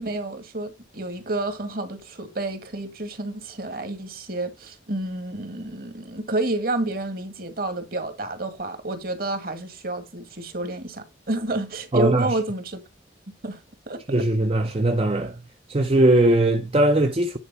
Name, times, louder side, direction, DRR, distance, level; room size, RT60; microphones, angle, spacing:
voice 1, 0.0-12.8 13.4-13.6 13.9-14.2, right 2 dB, 50° right, 1.8 m, -30 dB
voice 2, 11.9-12.3 14.1-15.3 15.7-17.4, right 1 dB, 30° right, 0.6 m, -20 dB
9.9 x 4.5 x 5.6 m
head